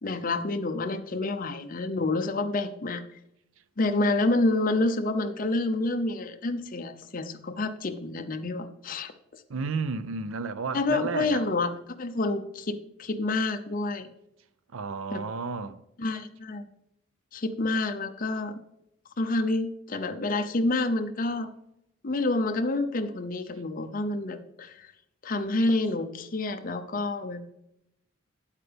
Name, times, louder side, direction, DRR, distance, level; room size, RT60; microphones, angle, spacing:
voice 1, 0.0-3.0 3.8-9.1 10.7-11.7 12.0-14.1 15.1-15.2 16.0-16.7 17.3-18.6 19.2-21.5 22.0-24.9 25.2-27.4, left 2 dB, 45° left, 0.6 m, -28 dB
voice 2, 9.5-11.4 14.7-15.8, right 4 dB, 85° right, 0.6 m, -32 dB
9.0 x 8.2 x 3.4 m
head